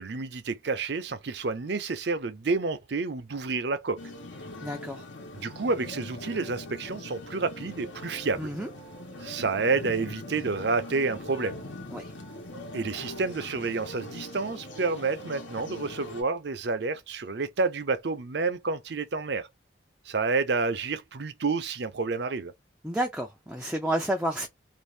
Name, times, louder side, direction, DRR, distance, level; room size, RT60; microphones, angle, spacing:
voice 1, 0.0-4.0 5.3-8.5 9.2-11.6 12.7-19.5 20.1-22.5, right 4 dB, 60° right, 0.6 m, -29 dB
sound 1, 4.0-16.2, left 1 dB, 75° left, 1.1 m, -41 dB
voice 2, 4.6-5.1 8.4-8.7 11.9-12.1 22.8-24.5, right 1 dB, 5° right, 0.4 m, -30 dB
2.6 x 2.5 x 3.2 m
head